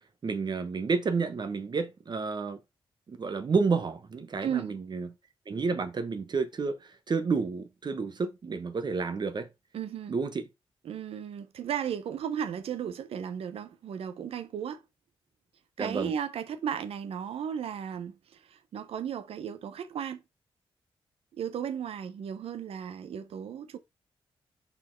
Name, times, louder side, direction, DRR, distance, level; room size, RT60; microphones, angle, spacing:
voice 1, 0.2-2.6 3.1-5.1 5.5-9.5 10.1-10.4 15.8-16.1, right 4 dB, 50° right, 0.9 m, -30 dB
voice 2, 4.4-4.8 9.7-10.2 10.8-14.8 15.8-20.2 21.3-23.8, right 8 dB, 85° right, 0.9 m, -35 dB
5.5 x 4.3 x 4.4 m
cardioid pair, 70°, 10 cm